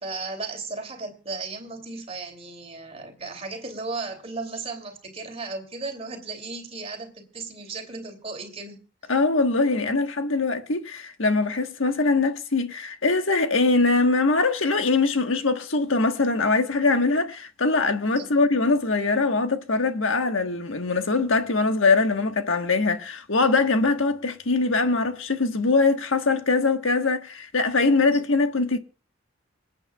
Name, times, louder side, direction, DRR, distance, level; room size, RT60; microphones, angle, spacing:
voice 1, 0.0-8.8 18.1-18.3 28.1-28.2, right 3 dB, 30° right, 2.9 m, -35 dB
voice 2, 9.1-28.8, left 3 dB, 80° left, 1.4 m, -22 dB
26.5 x 8.9 x 2.3 m
head